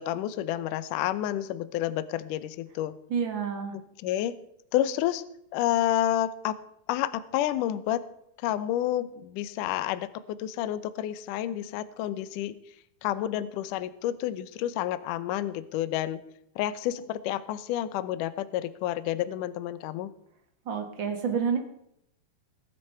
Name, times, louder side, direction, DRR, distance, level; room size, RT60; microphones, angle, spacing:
voice 1, 0.0-3.0 3.7-4.4 4.7-5.2 5.5-6.6 6.9-8.0 8.4-12.6 13.0-16.2 16.6-20.1, left 12 dB, 80° left, 15 dB, 1.8 m, -29 dB
voice 2, 3.1-3.7 20.6-21.6, right 6 dB, 50° right, 4 dB, 1.5 m, -28 dB
20.5 x 7.7 x 5.6 m, 0.77 s
omnidirectional pair, 4.7 m